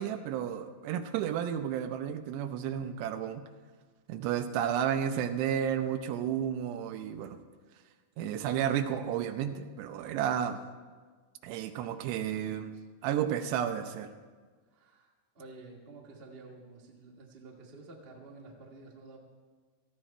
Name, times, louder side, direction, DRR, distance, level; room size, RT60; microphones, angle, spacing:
voice 1, 0.0-3.4 4.1-7.4 8.2-10.6 11.4-12.7 13.0-14.1, right 9 dB, 80° right, 8 dB, 2.9 m, -32 dB
voice 2, 14.7-19.2, right 3 dB, 45° right, -2 dB, 0.7 m, -51 dB
17.5 x 13.5 x 4.4 m, 1.5 s
omnidirectional pair, 5.0 m